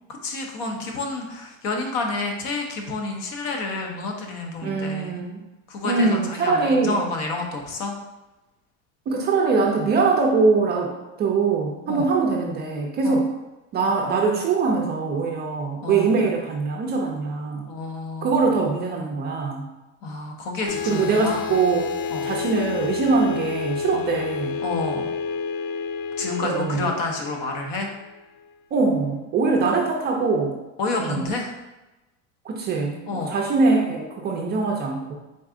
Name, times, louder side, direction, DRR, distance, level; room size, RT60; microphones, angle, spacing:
voice 1, 0.2-5.2 5.7-7.9 11.9-12.1 13.0-13.2 15.8-16.1 17.7-18.5 20.0-21.4 22.1-22.3 23.9-24.0 24.6-25.1 26.2-27.9 30.8-31.5 33.1-33.4, left 3 dB, 60° left, 2 dB, 0.9 m, -29 dB
voice 2, 4.6-5.4 5.8-7.1 9.1-13.3 13.7-17.7 18.2-19.7 20.8-21.9 22.2-24.6 26.4-26.9 28.7-30.6 31.0-31.3 32.4-33.0 33.3-35.1, right 4 dB, 25° right, 0 dB, 0.4 m, -22 dB
sound 1, 20.7-28.4, left 5 dB, 85° left, 0.5 m, -30 dB
4.0 x 2.4 x 3.7 m, 1.0 s
supercardioid pair, 130°, 39 cm